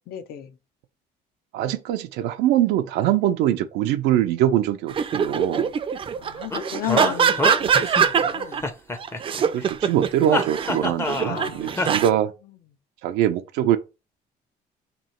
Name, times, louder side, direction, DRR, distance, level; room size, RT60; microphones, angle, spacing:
voice 1, 0.1-0.5 6.2-8.6 11.2-11.9, left 10 dB, 65° left, 0.6 m, -34 dB
voice 2, 1.5-5.7 9.5-12.3 13.0-13.8, right 11 dB, 90° right, 0.4 m, -23 dB
sound 1, 4.9-8.6 9.0-12.1, right 7 dB, 30° right, 0.4 m, -23 dB
sound 2, 6.5-8.3 8.6-9.7 10.3-11.5 11.8-11.9, left 2 dB, 15° left, 0.5 m, -26 dB
3.0 x 2.7 x 4.3 m
cardioid pair, 110°, 17 cm